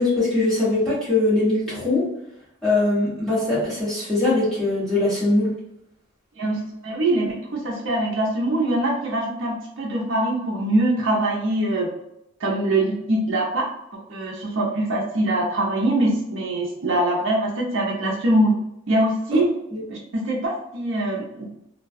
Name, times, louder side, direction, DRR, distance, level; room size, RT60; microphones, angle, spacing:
voice 1, 0.0-2.0 2.6-5.5 19.3-19.4 19.7-19.8, left 2 dB, ahead, -11 dB, 1.1 m, -21 dB
voice 2, 6.4-11.9 12.4-13.7 13.9-18.5 18.9-19.5 19.9-21.5, right 1 dB, 60° right, -3 dB, 0.5 m, -23 dB
2.2 x 2.1 x 2.5 m, 0.81 s
head